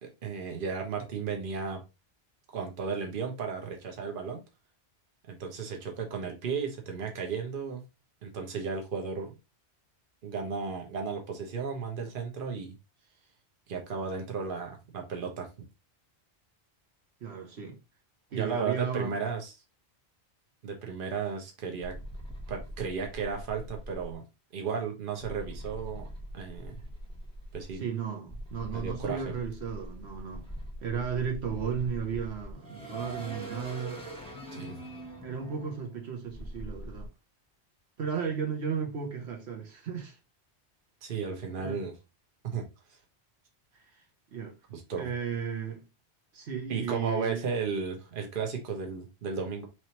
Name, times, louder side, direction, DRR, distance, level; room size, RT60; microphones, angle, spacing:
voice 1, 0.0-1.8 2.5-4.4 5.2-7.8 8.2-9.3 10.2-12.8 13.7-15.5 18.3-19.5 20.6-22.0 22.5-24.2 24.5-26.1 26.3-26.8 27.5-27.9 28.7-29.2 34.5-34.8 41.0-41.9 42.5-42.6 44.7-45.1 46.7-49.7, right 5 dB, 55° right, 1.1 m, -34 dB
voice 2, 17.2-17.8 18.3-19.2 27.7-30.4 30.8-34.1 35.2-37.1 38.0-40.2 41.6-41.8 43.7-44.0 44.3-44.5 44.9-45.8 46.3-47.4, right 6 dB, 75° right, 1.1 m, -34 dB
sound 1, 21.8-24.1 25.2-27.8 28.3-37.1, equal, 5° left, 1.0 m, -42 dB
4.6 x 3.1 x 2.9 m
omnidirectional pair, 1.1 m